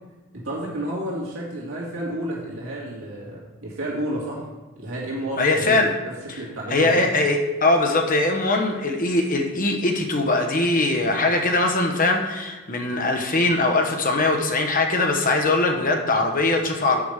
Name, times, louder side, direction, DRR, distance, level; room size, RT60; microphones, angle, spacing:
voice 1, 0.3-4.4 4.7-5.8 6.3-7.0, right 1 dB, 70° right, -5 dB, 2.4 m, -31 dB
voice 2, 5.4-5.9 6.3-6.4 6.7-17.0, left 2 dB, 40° left, 3 dB, 1.1 m, -21 dB
8.5 x 5.2 x 6.6 m, 1.2 s
head